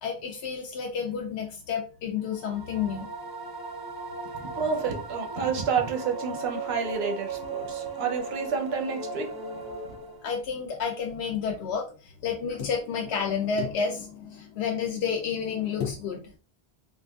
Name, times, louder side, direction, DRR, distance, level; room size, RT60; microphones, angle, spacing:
voice 1, 0.0-3.1 10.2-16.4, left 6 dB, 85° left, 0.8 m, -30 dB
sound 1, 2.2-10.4, right 4 dB, 35° right, 0.4 m, -37 dB
voice 2, 4.3-9.4 9.8-9.9, right 5 dB, 75° right, 0.9 m, -30 dB
3.7 x 2.4 x 2.3 m
omnidirectional pair, 1.1 m